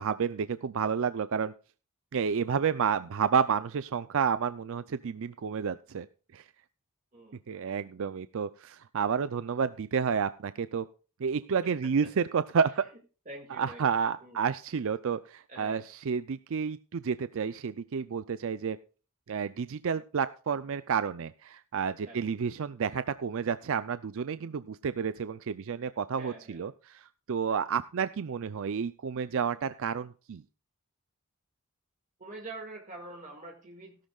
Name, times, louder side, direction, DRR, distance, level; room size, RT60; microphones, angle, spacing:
voice 1, 0.0-1.5 2.1-6.1 6.3-6.4 7.5-10.9 11.2-12.9 13.6-18.8 19.3-30.4, right 6 dB, 65° right, 13 dB, 0.4 m, -30 dB
voice 2, 7.1-7.5 11.8-12.1 13.3-13.8 14.2-14.5 15.5-15.9 22.0-22.2 26.1-26.6 32.2-34.1, right 2 dB, 35° right, 0 dB, 1.9 m, -45 dB
16.5 x 11.5 x 2.4 m, 0.36 s
head